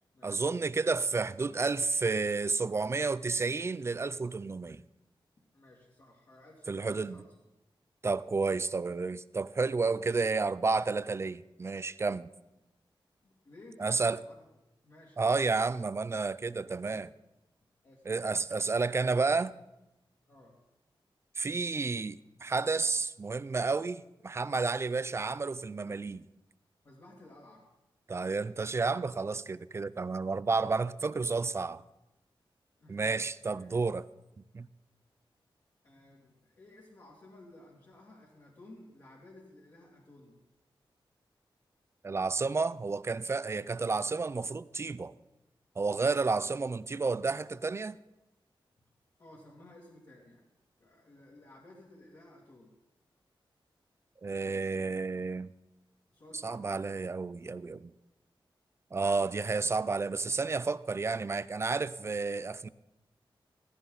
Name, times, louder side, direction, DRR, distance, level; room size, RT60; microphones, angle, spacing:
voice 1, 0.2-4.8 6.7-7.2 8.0-12.3 13.8-14.2 15.2-17.1 18.1-19.5 21.4-26.2 28.1-31.8 32.9-34.1 34.5-34.7 42.0-45.1 45.8-48.0 54.2-55.5 56.3-57.9 58.9-62.7, right 4 dB, 30° right, 0.4 m, -31 dB
voice 2, 5.5-7.2 13.2-14.5 14.8-15.7 16.9-17.1 17.8-18.0 20.3-20.5 26.8-27.7 32.8-33.3 33.6-33.8 35.8-40.4 49.2-50.4 50.8-52.7 56.1-56.8, left 1 dB, 45° left, 2.5 m, -55 dB
16.0 x 15.0 x 4.0 m
wide cardioid pair, 155°, 9 cm